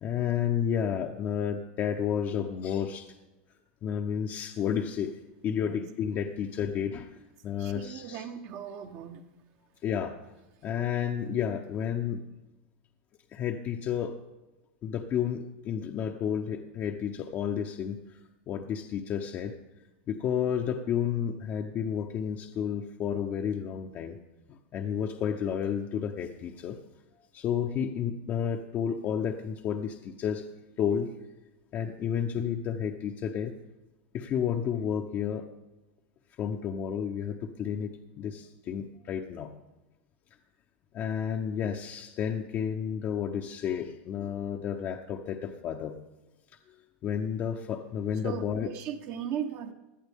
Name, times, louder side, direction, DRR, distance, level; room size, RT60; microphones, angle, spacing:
voice 1, 0.0-3.1 3.8-7.1 7.4-8.3 9.8-10.2 10.6-12.2 13.3-14.2 14.8-18.2 18.5-19.5 20.1-24.2 24.5-26.8 27.3-30.5 30.8-31.1 31.7-33.5 34.1-35.5 36.4-39.5 40.9-46.0 47.0-48.7, left 8 dB, 35° left, 2 dB, 0.8 m, -31 dB
voice 2, 7.6-9.2 48.2-49.7, right 9 dB, 50° right, 5 dB, 1.2 m, -37 dB
17.5 x 11.0 x 3.6 m, 1.1 s
supercardioid pair, 130°, 6 cm